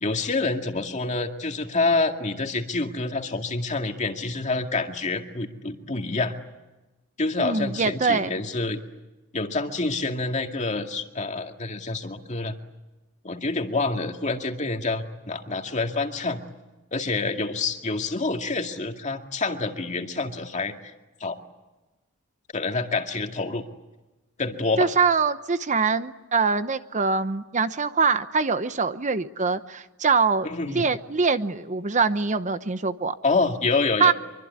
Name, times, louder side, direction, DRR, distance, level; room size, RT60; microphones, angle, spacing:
voice 1, 0.0-6.3 7.2-8.8 9.3-12.5 13.2-16.4 16.9-20.9 21.2-21.4 22.5-23.6 24.4-24.9 30.4-30.8 33.2-34.1, left 3 dB, 35° left, 4 dB, 2.2 m, -27 dB
voice 2, 7.4-8.3 24.8-33.2 34.0-34.1, right 4 dB, 35° right, 11 dB, 0.9 m, -23 dB
25.0 x 24.0 x 9.6 m, 1.1 s
head